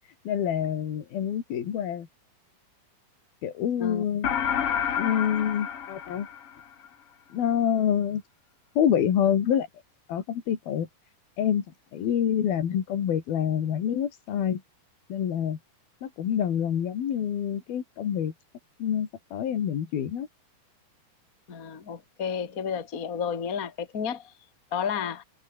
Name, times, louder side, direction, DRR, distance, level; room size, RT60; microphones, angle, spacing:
voice 1, 0.3-2.1 3.4-4.3 5.0-6.3 7.3-8.2 8.8-9.7 10.1-10.9 11.4-11.6 11.9-14.6 15.1-15.6 16.0-18.3 18.8-20.3, left 9 dB, 75° left, 4.4 m, -26 dB
sound 1, 4.2-6.9, left 8 dB, 50° left, 2.2 m, -29 dB
voice 2, 21.5-24.3 24.7-25.2, left 7 dB, 25° left, 2.4 m, -31 dB
omnidirectional pair, 4.3 m